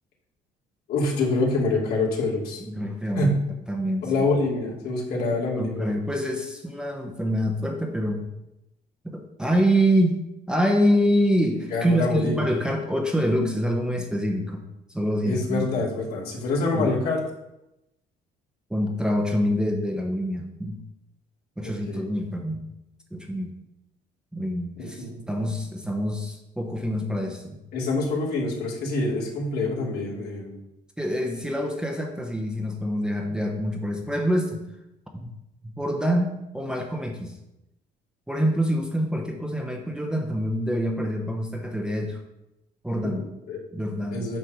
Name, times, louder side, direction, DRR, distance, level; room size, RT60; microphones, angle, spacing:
voice 1, 0.9-2.6 3.2-3.4 4.0-6.0 11.7-12.4 15.2-17.2 21.6-22.1 24.8-25.2 27.7-30.6 43.1-43.6 44.1-44.4, left 2 dB, 65° left, -4 dB, 2.6 m, -26 dB
voice 2, 2.6-3.4 3.7-4.1 5.6-8.3 9.0-14.6 14.9-15.9 16.7-16.9 18.7-20.8 21.6-22.7 23.1-23.5 24.3-27.6 31.0-34.6 35.1-35.3 35.6-37.4 38.3-42.2 42.8-43.3 43.7-44.3, equal, 5° right, 1 dB, 0.9 m, -26 dB
9.3 x 3.3 x 6.2 m, 0.89 s
cardioid pair, 110°, 17 cm